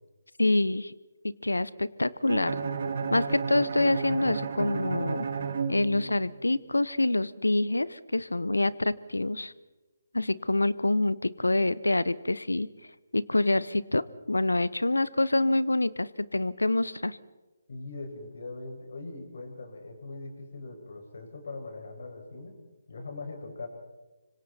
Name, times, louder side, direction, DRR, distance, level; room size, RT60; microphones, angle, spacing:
voice 1, 0.4-0.9 1.2-2.5 3.1-5.3 5.7-9.5 10.1-12.7 13.1-17.2, left 2 dB, 85° left, 19 dB, 0.9 m, -26 dB
Bowed string instrument, 2.3-6.4, right 5 dB, 50° right, 2.2 m, -32 dB
voice 2, 17.7-22.6 22.9-23.7, left 3 dB, 60° left, 3 dB, 6.2 m, -41 dB
25.5 x 25.0 x 4.4 m, 1.1 s
figure-of-eight pair, 150°, 0 cm